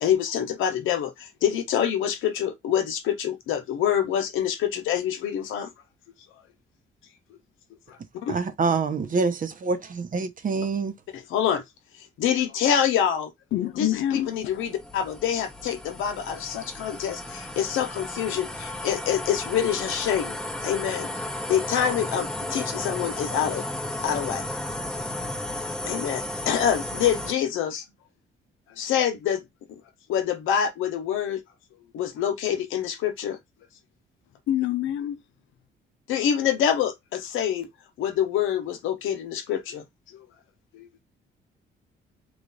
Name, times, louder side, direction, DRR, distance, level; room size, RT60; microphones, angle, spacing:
voice 1, 0.0-5.7 7.9-8.4 11.1-11.6 12.2-13.3 13.8-20.4 20.6-21.1 21.5-23.6 24.0-24.4 25.8-27.8 28.8-29.4 30.1-31.4 31.9-33.4 36.1-37.7 38.0-39.8 40.1-40.2 40.7-41.0, left 9 dB, 85° left, 0.9 m, -26 dB
voice 2, 8.3-10.9, right 4 dB, 45° right, 0.8 m, -26 dB
voice 3, 13.5-14.3 34.5-35.2, left 12 dB, 70° left, 0.5 m, -26 dB
sound 1, 13.8-27.3, left 1 dB, 5° left, 0.8 m, -34 dB
3.3 x 2.3 x 3.9 m
cardioid pair, 90°, 20 cm